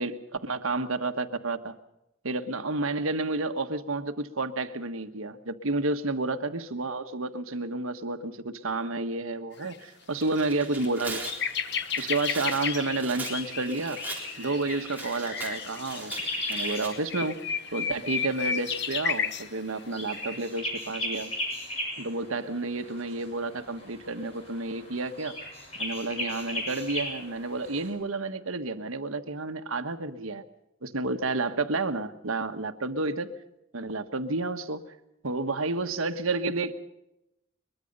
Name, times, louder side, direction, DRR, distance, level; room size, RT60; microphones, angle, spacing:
voice 1, 0.0-1.7 2.2-11.2 12.0-14.0 14.4-16.1 16.5-17.4 17.7-21.3 22.0-25.4 25.8-30.4 30.8-33.3 33.7-34.8 35.2-36.7, right 3 dB, 90° right, 8 dB, 1.4 m, -30 dB
sound 1, 9.6-9.8 10.2-10.3 10.6-19.5 20.2-20.4, left 7 dB, 55° left, 1.3 m, -33 dB
Tearing, 10.0-16.9, right 3 dB, 10° right, 3.9 m, -41 dB
sound 2, 10.1-27.9, left 1 dB, 30° left, 7.7 m, -39 dB
22.5 x 22.0 x 5.4 m, 0.88 s
head